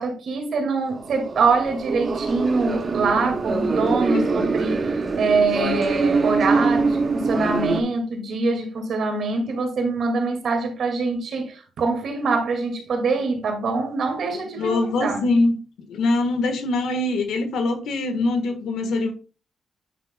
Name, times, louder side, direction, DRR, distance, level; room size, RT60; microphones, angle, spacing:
voice 1, 0.0-4.9 5.2-15.3, right 4 dB, 70° right, 2.0 m, -24 dB
sound 1, 1.0-7.8, right 4 dB, 40° right, 1.1 m, -24 dB
voice 2, 14.6-15.6 15.9-19.1, left 2 dB, 90° left, 1.3 m, -23 dB
9.1 x 5.8 x 2.2 m
cardioid pair, 90°, 0 cm